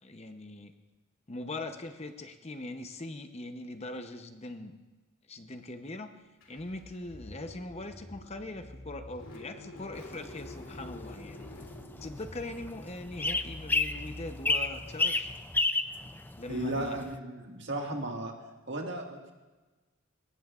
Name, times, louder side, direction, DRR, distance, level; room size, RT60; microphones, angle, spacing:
voice 1, 0.0-0.7 1.3-4.8 5.3-6.1 6.5-11.5 12.0-15.3 16.4-17.0, left 2 dB, 30° left, 7 dB, 0.8 m, -41 dB
Car / Engine starting, 6.4-15.2, left 1 dB, 70° left, 2.9 m, -47 dB
sound 1, 9.9-17.2, left 3 dB, 10° left, 0.4 m, -33 dB
voice 2, 16.5-18.3 18.7-19.3, right 1 dB, 55° right, 2 dB, 1.8 m, -35 dB
22.0 x 18.5 x 2.5 m, 1.2 s
head